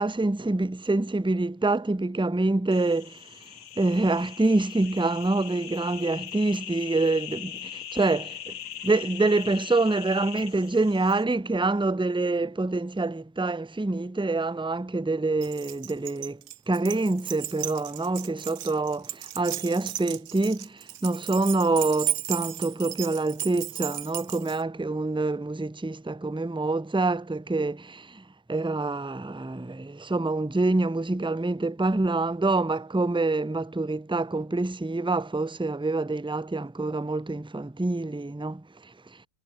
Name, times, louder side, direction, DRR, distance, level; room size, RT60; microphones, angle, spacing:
voice 1, 0.0-3.2 3.8-8.5 8.8-16.4 16.7-28.2 28.5-38.6, right 2 dB, 5° right, 0.6 m, -26 dB
sound 1, 2.7-11.2, left 10 dB, 80° left, 1.4 m, -40 dB
Keys jangling, 15.4-24.6, right 12 dB, 75° right, 1.1 m, -35 dB
omnidirectional pair, 1.5 m